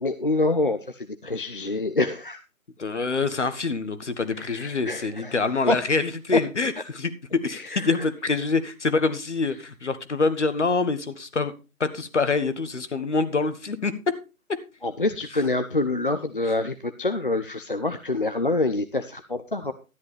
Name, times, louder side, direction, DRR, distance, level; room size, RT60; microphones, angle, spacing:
voice 1, 0.0-2.4 4.3-5.4 5.7-5.8 6.3-6.4 7.5-8.1 14.8-19.7, left 2 dB, 40° left, 9 dB, 0.6 m, -26 dB
voice 2, 2.8-11.5 11.8-14.0 14.5-14.6, left 4 dB, 55° left, 11 dB, 1.5 m, -26 dB
13.0 x 10.5 x 3.3 m, 0.30 s
figure-of-eight pair, 160°, 42 cm